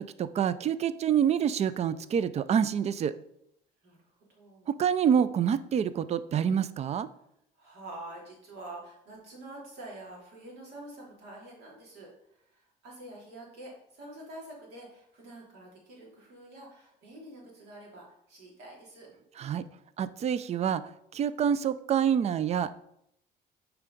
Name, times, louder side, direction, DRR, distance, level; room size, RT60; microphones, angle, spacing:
voice 1, 0.0-3.1 4.7-7.1 19.4-19.6 20.0-20.8 21.1-22.7, right 8 dB, 40° right, 15 dB, 0.4 m, -27 dB
voice 2, 4.3-4.7 7.5-12.1 12.4-19.1, right 1 dB, 80° right, -3 dB, 3.3 m, -47 dB
6.8 x 4.7 x 5.2 m, 0.75 s
cardioid pair, 110°, 17 cm